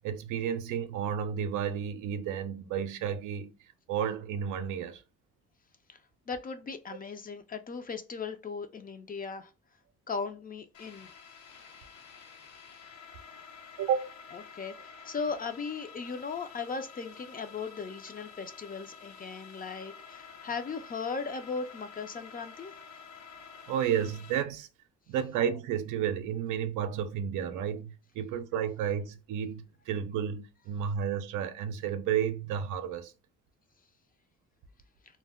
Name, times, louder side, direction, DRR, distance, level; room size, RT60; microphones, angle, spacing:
voice 1, 0.0-3.5 3.9-5.0 13.8-14.1 23.7-24.7 25.1-33.1, right 8 dB, 85° right, 0.5 m, -32 dB
voice 2, 6.3-9.5 10.1-11.1 14.3-22.7, left 5 dB, 30° left, 0.4 m, -37 dB
sound 1, 10.7-24.4, left 6 dB, 70° left, 0.7 m, -50 dB
2.2 x 2.1 x 3.5 m
cardioid pair, 90°, 30 cm